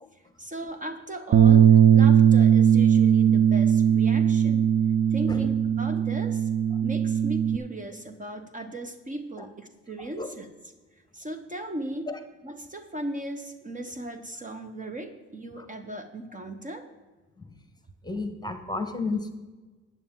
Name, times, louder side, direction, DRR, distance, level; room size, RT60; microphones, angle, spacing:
voice 1, 0.1-4.7 5.1-6.5 6.8-10.5 11.1-12.1 12.4-16.9, right 1 dB, 25° right, 7 dB, 1.1 m, -37 dB
Bass guitar, 1.3-7.6, right 8 dB, 55° right, 0.5 m, -19 dB
voice 2, 10.0-10.3 12.1-12.2 15.6-15.7 17.4-17.5 18.0-19.3, left 3 dB, 15° left, 8 dB, 1.3 m, -33 dB
12.0 x 9.2 x 3.8 m, 1.3 s
cardioid pair, 90°, 30 cm